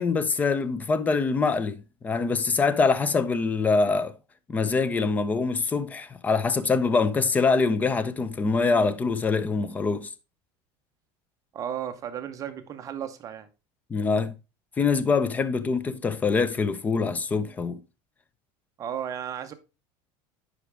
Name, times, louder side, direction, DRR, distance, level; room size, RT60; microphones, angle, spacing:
voice 1, 0.0-4.1 4.5-10.1 13.9-14.3 14.8-17.8, left 4 dB, 10° left, 0.4 m, -24 dB
voice 2, 11.5-13.5 18.8-19.5, right 9 dB, 25° right, 0.8 m, -34 dB
10.0 x 4.9 x 3.4 m
cardioid pair, 165°, 13 cm